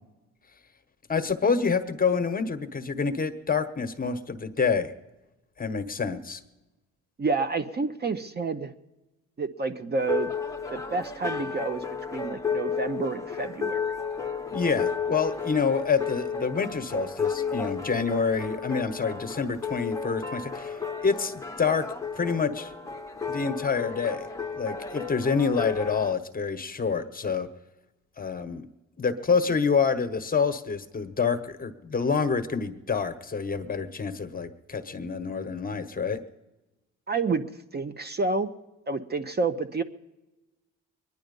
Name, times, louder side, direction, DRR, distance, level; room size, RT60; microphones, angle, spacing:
voice 1, 1.1-4.9 5.6-6.4 14.5-21.8 22.2-22.7 23.3-24.3 24.5-27.5 28.2-28.7 29.0-36.2, left 5 dB, 30° left, 9 dB, 1.1 m, -27 dB
voice 2, 7.2-8.7 9.4-10.3 10.7-11.8 12.1-13.9 37.1-37.4 37.7-38.5 38.9-39.8, right 4 dB, 35° right, 9 dB, 0.8 m, -29 dB
sound 1, 10.0-26.1, left 5 dB, 10° left, 1.0 m, -33 dB
22.0 x 10.5 x 5.4 m, 1.1 s
cardioid pair, 90°, 30 cm